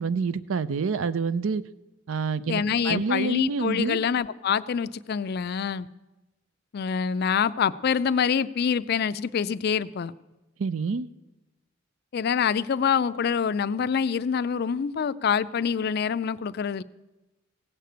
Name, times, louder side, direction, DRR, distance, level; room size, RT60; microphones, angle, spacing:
voice 1, 0.0-1.6 2.1-4.0 10.6-11.1, right 4 dB, 75° right, 16 dB, 0.5 m, -27 dB
voice 2, 2.5-5.9 6.7-10.1 12.1-16.8, left 7 dB, 50° left, 15 dB, 0.4 m, -26 dB
16.5 x 6.7 x 7.9 m, 1.1 s
head